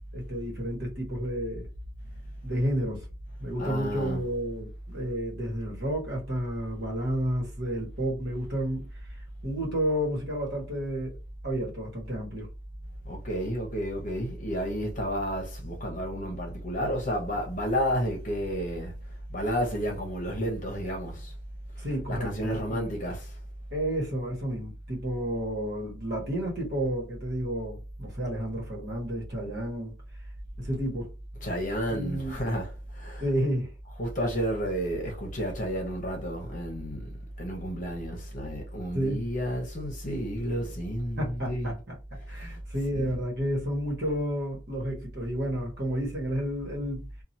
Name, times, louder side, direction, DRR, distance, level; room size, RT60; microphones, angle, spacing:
voice 1, 0.1-1.7 2.4-3.0 3.4-8.9 9.4-11.1 11.4-12.5 21.8-22.9 23.7-29.9 30.6-31.1 31.9-32.4 33.2-33.7 38.9-39.2 41.2-41.7 42.3-47.1, equal, 50° right, 1.3 m, -31 dB
voice 2, 3.6-4.2 13.0-21.4 21.8-23.4 31.3-33.3 33.8-41.8 42.3-42.6 42.9-43.1, equal, 40° left, 0.9 m, -31 dB
2.9 x 2.4 x 2.7 m
head